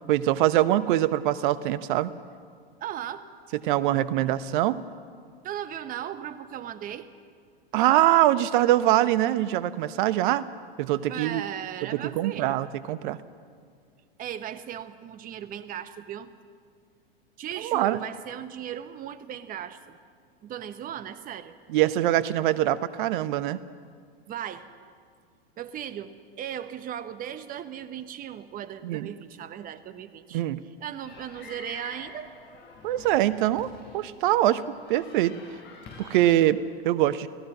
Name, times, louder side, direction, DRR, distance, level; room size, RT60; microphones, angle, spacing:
voice 1, 0.1-2.1 3.6-4.8 7.7-10.5 10.8-11.4 11.9-13.2 17.6-18.0 21.7-23.6 28.8-29.1 30.3-30.6 32.8-34.6 34.9-35.4 36.0-37.3, right 13 dB, 55° right, 15 dB, 1.1 m, -23 dB
voice 2, 2.8-3.2 5.4-7.1 11.1-12.6 14.2-16.3 17.4-20.0 20.4-21.6 24.3-24.7 25.6-30.4 30.8-32.3, right 10 dB, 25° right, 13 dB, 1.1 m, -37 dB
sound 1, 31.0-36.5, left 3 dB, 35° left, 7.1 m, -47 dB
29.5 x 17.0 x 6.1 m, 2.1 s
hypercardioid pair, 100°, 31 cm